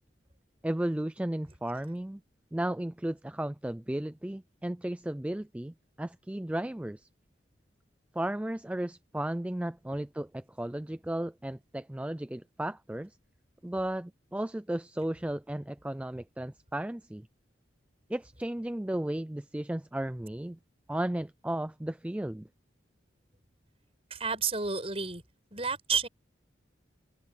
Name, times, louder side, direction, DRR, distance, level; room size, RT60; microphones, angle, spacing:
voice 1, 0.6-2.2 2.5-7.1 8.1-13.2 13.6-17.3 18.1-20.6 20.9-22.5, right 1 dB, 5° right, 0.3 m, -34 dB
voice 2, 24.1-25.2 25.5-26.1, right 5 dB, 30° right, 6.0 m, -30 dB
open air
head